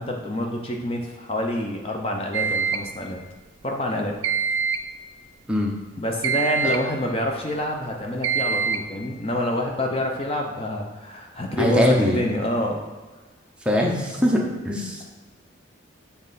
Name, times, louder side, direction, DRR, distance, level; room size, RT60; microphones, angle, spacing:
voice 1, 0.0-3.2 3.6-4.1 6.0-12.8, left 1 dB, 30° left, 1 dB, 0.7 m, -27 dB
sound 1, 2.3-2.9 4.2-4.9 6.2-6.9 8.2-8.9, right 6 dB, 75° right, 0.4 m, -24 dB
voice 2, 11.6-12.2 13.6-15.0, left 1 dB, 5° right, -2 dB, 0.7 m, -21 dB
7.7 x 4.1 x 4.0 m, 1.3 s
head